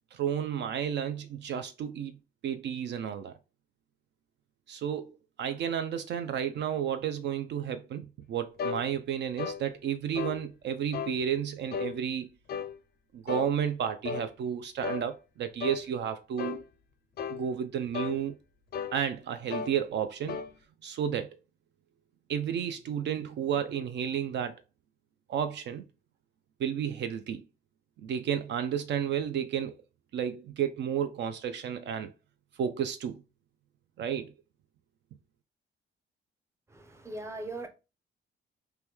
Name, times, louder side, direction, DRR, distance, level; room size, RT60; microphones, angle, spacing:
voice 1, 0.1-2.2 2.4-3.3 4.7-12.3 13.1-16.6 17.3-18.4 18.9-20.4 20.8-21.4 22.3-24.5 25.3-25.8 26.6-27.4 28.0-29.8 30.1-32.1 32.6-33.1 34.0-34.3, right 9 dB, 65° right, 0.4 m, -32 dB
sound 1, 8.6-8.8 9.4-9.6 10.2-10.4 10.9-11.2 11.7-11.9 12.5-12.7 13.3-13.5 14.1-14.3 14.8-15.1 15.6-15.8 16.4-16.6 17.2-17.4 17.9-18.2 18.7-19.0 19.5-19.8 20.3-20.5, left 6 dB, 55° left, 0.4 m, -34 dB
voice 2, 36.7-37.7, right 2 dB, 15° right, 0.6 m, -39 dB
3.0 x 2.2 x 3.4 m
cardioid pair, 90°, 20 cm